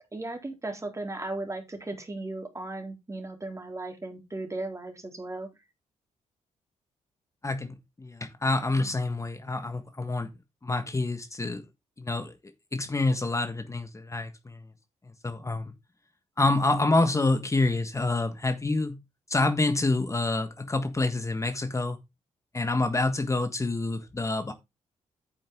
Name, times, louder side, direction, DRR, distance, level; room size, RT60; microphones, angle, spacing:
voice 1, 0.1-5.5, right 2 dB, 25° right, 3.7 m, -36 dB
voice 2, 7.4-10.3 10.6-11.6 12.0-12.3 12.7-14.6 15.2-15.7 16.4-19.0 19.3-22.0 22.5-24.5, left 2 dB, 25° left, 1.5 m, -27 dB
9.3 x 7.5 x 3.8 m
cardioid pair, 75°, 13 cm